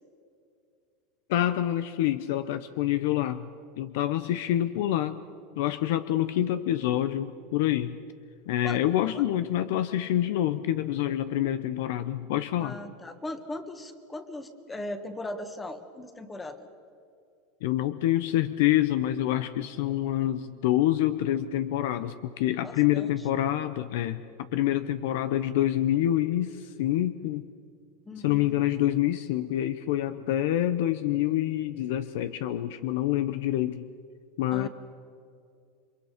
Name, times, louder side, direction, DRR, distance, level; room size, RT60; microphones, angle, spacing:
voice 1, 1.3-3.5 3.8-5.2 5.6-8.0 8.5-12.8 17.6-27.5 28.2-33.9 34.4-34.7, left 13 dB, 70° left, 13 dB, 0.8 m, -27 dB
voice 2, 12.6-16.7 22.6-23.2 28.0-28.6 34.5-34.7, left 1 dB, 10° left, 8 dB, 1.7 m, -38 dB
29.5 x 24.5 x 5.1 m, 2.4 s
supercardioid pair, 145°, 0 cm